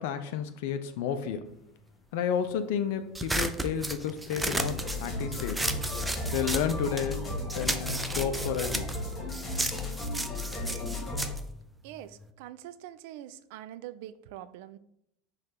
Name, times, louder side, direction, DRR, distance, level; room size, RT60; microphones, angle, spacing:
voice 1, 0.0-1.5 2.1-5.7 6.3-7.3 7.5-8.9, left 8 dB, 60° left, 8 dB, 0.4 m, -31 dB
sound 1, 3.2-7.2 7.5-12.3, right 2 dB, 10° right, 0.5 m, -34 dB
sound 2, 4.4-11.3, left 2 dB, 20° left, 2.3 m, -35 dB
voice 2, 11.8-14.8, right 12 dB, 55° right, 13 dB, 0.3 m, -44 dB
5.3 x 3.6 x 5.7 m, 0.75 s
figure-of-eight pair, 75°, 0 cm